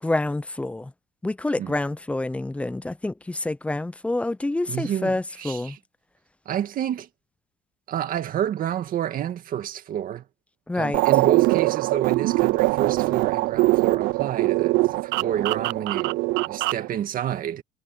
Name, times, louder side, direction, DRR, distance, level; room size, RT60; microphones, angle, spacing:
voice 1, 0.0-0.9 1.2-5.8 10.7-11.0, left 2 dB, 5° left, 0.5 m, -27 dB
voice 2, 4.7-5.8 6.5-7.1 7.9-10.2 10.7-16.2 16.4-17.6, right 10 dB, 50° right, 2.1 m, -29 dB
sound 1, 10.9-16.9, right 21 dB, 85° right, 0.5 m, -22 dB
cardioid pair, 140°, 18 cm